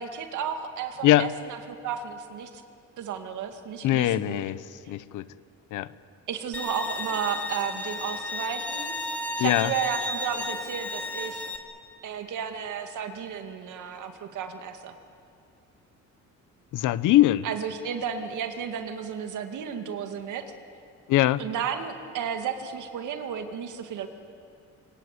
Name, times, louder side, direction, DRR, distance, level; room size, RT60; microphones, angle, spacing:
voice 1, 0.0-2.6 3.0-4.4 6.3-8.9 9.4-11.4 12.0-15.0 17.4-20.5 21.4-24.1, right 7 dB, 80° right, 6 dB, 2.3 m, -33 dB
voice 2, 3.8-4.6 4.9-5.3 5.7-5.9 9.4-9.7 16.7-17.5 21.1-21.4, left 14 dB, 85° left, 16 dB, 0.9 m, -22 dB
Bowed string instrument, 6.5-11.6, left 1 dB, 5° left, 2.8 m, -33 dB
25.0 x 22.0 x 9.5 m, 2.5 s
cardioid pair, 90°, 30 cm